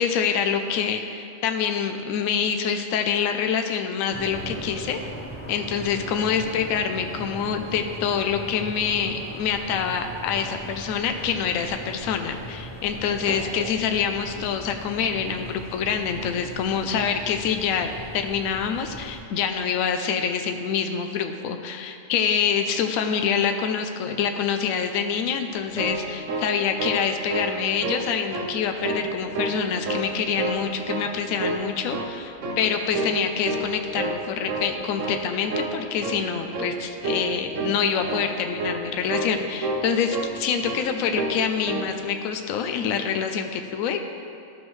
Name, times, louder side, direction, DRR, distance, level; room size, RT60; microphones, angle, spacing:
voice 1, 0.0-5.0 5.5-44.0, left 7 dB, 70° left, 5 dB, 0.9 m, -26 dB
sound 1, 4.1-19.2, equal, 20° left, 0.3 m, -39 dB
sound 2, 25.5-27.0 27.3-27.6 27.8-28.5 28.8-29.6 29.9-30.6 30.9-31.1 31.4-32.2 32.4-32.7 32.9-33.2 33.4-34.2 34.5-34.7 35.0-35.2 35.5-35.8 36.0-36.3 36.5-36.7 37.0-37.3 37.5-37.8 38.0-38.3 38.6-38.8 39.1-39.3 39.6-40.4 40.6-40.8 41.1-41.4 41.7-41.9, right 2 dB, 60° right, 1.1 m, -29 dB
12.5 x 6.1 x 3.2 m, 2.5 s
omnidirectional pair, 1.6 m